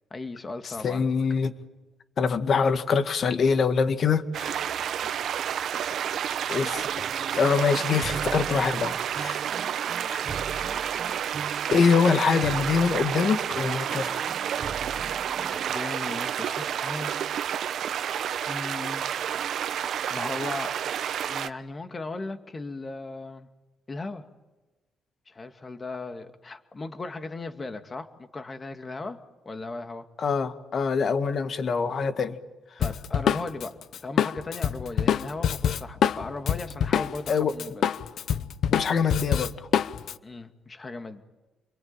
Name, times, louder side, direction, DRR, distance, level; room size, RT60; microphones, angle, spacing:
voice 1, 0.1-1.1 5.0-5.3 15.5-17.4 18.5-19.1 19.7-20.8 21.3-23.5 23.9-24.3 25.3-29.2 29.5-30.1 32.8-33.7 34.0-37.8 40.2-41.2, left 3 dB, 30° left, 7 dB, 2.3 m, -37 dB
voice 2, 0.8-1.5 2.2-4.6 6.5-6.9 7.3-9.4 10.1-10.3 11.7-14.3 30.2-32.4 37.3-37.5 38.7-39.7, left 5 dB, 50° left, 9 dB, 2.0 m, -24 dB
sound 1, 4.3-21.5, right 9 dB, 70° right, 0.9 m, -30 dB
sound 2, 6.7-15.8, right 6 dB, 45° right, 1.1 m, -40 dB
Drum kit, 32.8-37.3 37.6-40.1, left 9 dB, 70° left, 0.9 m, -25 dB
28.5 x 23.0 x 9.1 m, 1.1 s
cardioid pair, 90°, 0 cm